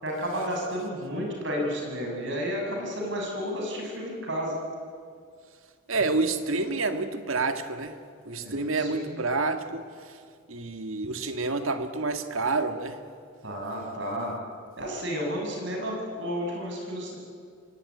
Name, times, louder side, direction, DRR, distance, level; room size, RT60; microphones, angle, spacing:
voice 1, 0.0-4.6 8.4-9.2 13.4-14.3 14.8-17.2, equal, 60° right, 0 dB, 7.2 m, -32 dB
voice 2, 5.9-8.0 8.2-10.2 10.5-13.0, right 3 dB, 75° right, 8 dB, 1.8 m, -28 dB
25.5 x 19.0 x 9.6 m, 2.2 s
head